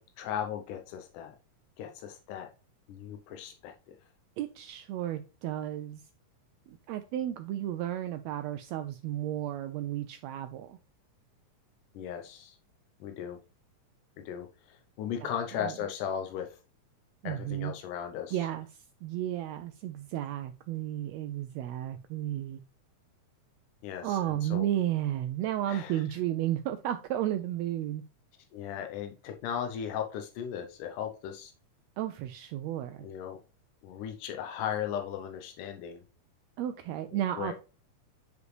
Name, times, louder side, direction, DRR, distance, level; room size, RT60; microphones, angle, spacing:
voice 1, 0.0-1.3 1.8-2.5 2.9-4.0 11.9-12.6 13.0-13.4 14.2-16.6 17.2-18.4 23.8-24.7 25.7-26.0 28.5-31.5 33.0-33.4 33.8-36.0 37.1-37.5, left 9 dB, 85° left, 5 dB, 2.2 m, -37 dB
voice 2, 4.4-6.0 6.7-10.8 15.2-15.7 17.2-17.7 18.3-18.7 19.0-22.6 24.0-28.0 32.0-33.1 36.6-37.5, right 12 dB, 85° right, 9 dB, 1.5 m, -33 dB
9.5 x 5.1 x 3.1 m, 0.33 s
omnidirectional pair, 3.6 m